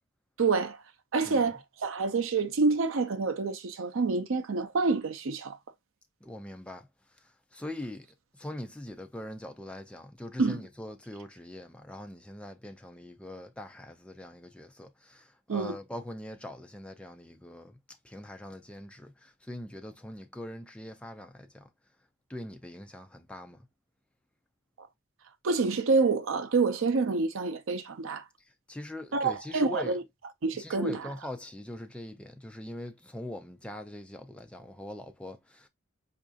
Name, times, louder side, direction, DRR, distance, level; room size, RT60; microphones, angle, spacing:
voice 1, 0.4-0.8 1.1-5.6 10.4-10.6 15.5-15.8 24.8-24.9 25.4-28.2 29.1-30.0 30.4-31.1, right 4 dB, 70° right, 0.6 m, -27 dB
voice 2, 6.2-6.9 7.5-8.1 8.3-17.8 18.0-21.7 22.3-23.6 28.7-30.0 30.6-35.7, left 1 dB, 5° left, 0.4 m, -42 dB
4.7 x 2.5 x 2.4 m
head